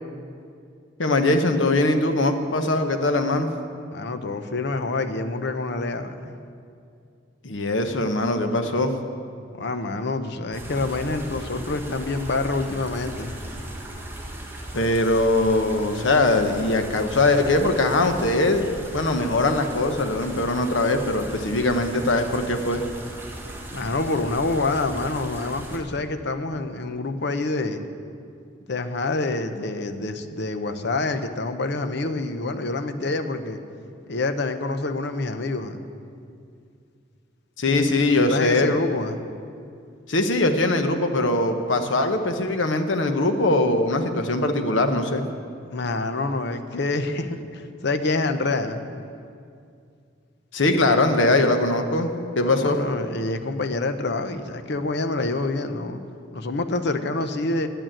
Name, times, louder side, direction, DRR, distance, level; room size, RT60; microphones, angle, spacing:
voice 1, 1.0-3.5 7.4-8.9 14.7-18.7 18.9-22.8 37.6-38.7 40.1-45.2 50.5-52.1 52.4-52.8, left 2 dB, 85° left, 6 dB, 1.1 m, -21 dB
voice 2, 3.9-6.4 9.5-13.4 23.7-27.8 28.7-33.6 34.1-35.8 37.7-39.2 45.7-48.8 52.4-56.0 56.3-57.7, left 2 dB, 65° left, 8 dB, 0.8 m, -27 dB
sound 1, 10.5-25.8, right 1 dB, 10° right, 1.6 m, -37 dB
10.5 x 9.1 x 8.9 m, 2.4 s
head